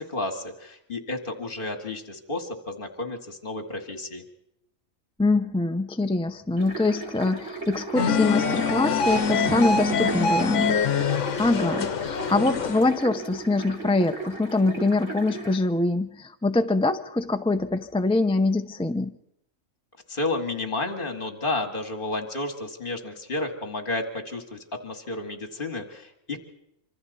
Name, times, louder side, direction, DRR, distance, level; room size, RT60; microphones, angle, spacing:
voice 1, 0.0-4.2 20.1-26.4, left 2 dB, 40° left, 2.2 m, -31 dB
voice 2, 5.2-19.1, left 2 dB, 10° left, 0.4 m, -24 dB
sound 1, 6.6-15.6, right 4 dB, 70° right, 3.5 m, -37 dB
sound 2, 8.0-12.9, left 5 dB, 70° left, 1.3 m, -24 dB
26.0 x 25.0 x 4.2 m
omnidirectional pair, 1.4 m